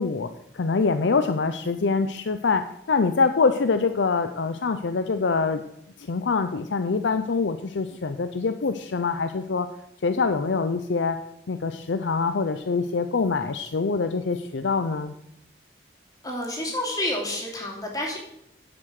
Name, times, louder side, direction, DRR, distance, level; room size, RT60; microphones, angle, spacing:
voice 1, 0.0-5.6 6.0-9.7 10.0-15.1, left 4 dB, 85° left, 9 dB, 0.6 m, -25 dB
voice 2, 16.2-18.2, left 1 dB, 20° left, -1 dB, 2.8 m, -29 dB
10.0 x 7.6 x 6.5 m, 0.81 s
head